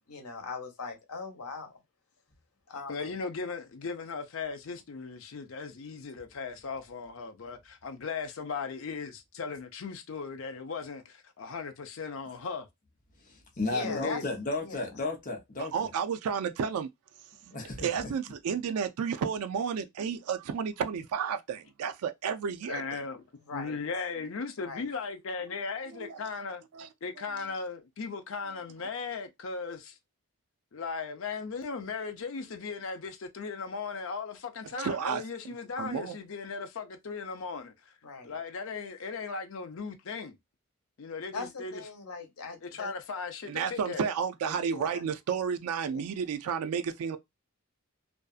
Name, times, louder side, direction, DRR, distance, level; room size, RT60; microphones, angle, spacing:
voice 1, 0.0-1.8 2.7-3.1 13.6-14.2 14.6-14.9 23.5-23.8 24.6-24.8 38.0-38.4 41.3-42.9 44.4-45.0 45.9-46.0, left 4 dB, 85° left, 0.9 m, -40 dB
voice 2, 2.9-12.7 13.9-14.2 22.7-23.2 23.5-26.6 27.0-30.0 30.7-37.9 38.2-40.4 41.0-41.8 42.6-44.1, left 4 dB, 65° left, 0.5 m, -37 dB
voice 3, 13.2-15.7 17.5-18.1, left 2 dB, 35° left, 0.8 m, -34 dB
voice 4, 15.6-16.9 17.5-22.8 25.9-26.2 26.7-26.9 34.8-35.2 35.8-36.2 43.5-47.2, right 7 dB, 80° right, 0.3 m, -32 dB
2.6 x 2.3 x 2.3 m
head